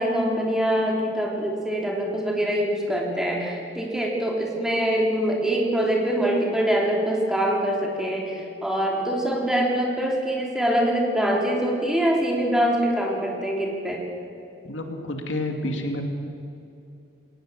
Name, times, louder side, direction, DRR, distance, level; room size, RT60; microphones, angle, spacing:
voice 1, 0.0-14.0, right 1 dB, 5° right, -1 dB, 3.4 m, -24 dB
voice 2, 14.6-16.0, left 1 dB, 90° left, 4 dB, 2.6 m, -29 dB
20.5 x 19.5 x 7.5 m, 2.7 s
head